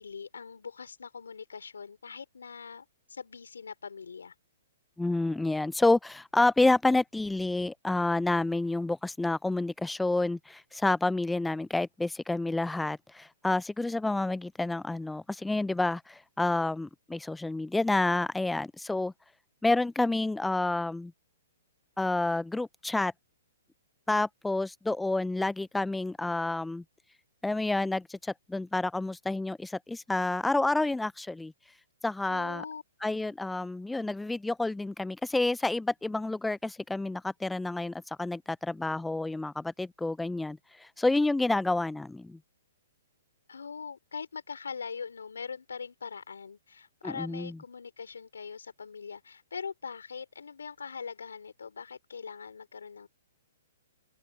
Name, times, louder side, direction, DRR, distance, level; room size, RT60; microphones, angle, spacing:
voice 1, 0.0-4.3 32.3-32.8 33.1-33.3 43.5-53.1, left 5 dB, 85° left, 3.9 m, -42 dB
voice 2, 5.0-19.1 19.6-21.1 22.0-23.1 24.1-26.8 27.4-31.5 32.0-32.6 33.0-42.4 47.0-47.6, left 2 dB, 5° left, 0.3 m, -29 dB
open air
hypercardioid pair, 130°, 0 cm